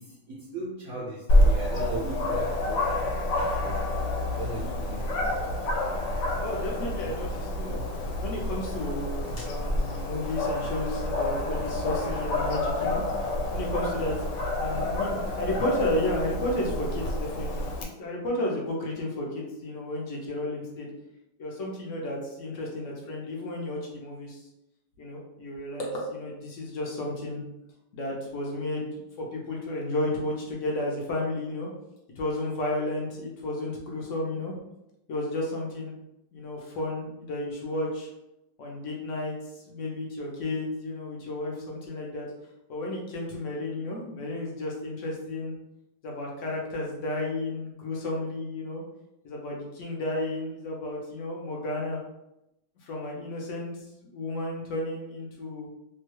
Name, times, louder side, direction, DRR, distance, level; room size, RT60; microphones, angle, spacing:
voice 1, 0.0-3.0 3.3-3.9 4.3-5.6, right 2 dB, 70° right, -3 dB, 0.9 m, -38 dB
Dog, 1.3-17.8, left 1 dB, 85° left, 1.2 m, -28 dB
voice 2, 6.4-7.8 8.2-13.0 13.5-14.2 14.6-20.9 21.4-24.4 25.0-27.4 27.9-31.7 32.2-34.5 35.1-35.9 36.3-38.1 38.6-39.3 39.7-42.3 42.7-45.5 46.0-48.8 49.2-52.0 52.8-53.7 54.0-55.7, left 1 dB, 60° left, -2 dB, 0.8 m, -32 dB
sound 1, 9.2-13.8, equal, 30° left, 0.7 m, -38 dB
2.9 x 2.2 x 3.1 m, 0.87 s
omnidirectional pair, 1.9 m